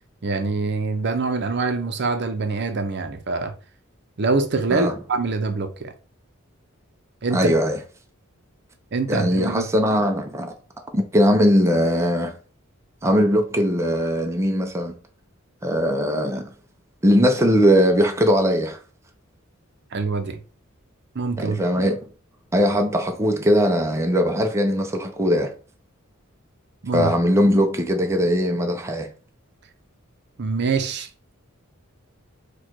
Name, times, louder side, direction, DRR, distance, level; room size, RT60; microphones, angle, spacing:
voice 1, 0.2-3.5 4.2-5.9 7.2-7.5 8.9-9.7 19.9-20.4 21.1-21.6 26.8-27.1 30.4-31.1, right 3 dB, 55° right, 0.6 m, -24 dB
voice 2, 7.3-7.8 9.1-10.5 10.9-12.3 13.0-14.9 15.6-16.5 17.0-18.8 21.4-22.0 22.5-25.5 26.9-29.1, equal, 15° right, 0.5 m, -20 dB
4.6 x 2.3 x 4.4 m
head